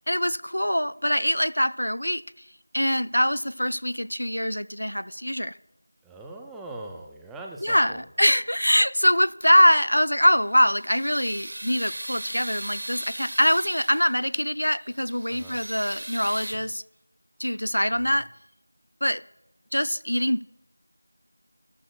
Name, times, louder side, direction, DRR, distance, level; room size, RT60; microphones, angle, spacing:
voice 1, 0.1-2.2 2.7-5.5 7.6-16.8 17.4-18.3 19.0-19.2 19.7-20.4, equal, 80° left, 16 dB, 0.4 m, -23 dB
voice 2, 6.0-8.0 15.3-15.6 17.9-18.2, right 2 dB, ahead, -1 dB, 0.4 m, -41 dB
sound 1, 10.3-14.3 14.8-16.5, right 1 dB, 50° right, 1.3 m, -38 dB
14.0 x 13.0 x 2.3 m, 0.94 s
figure-of-eight pair, 175°, 0 cm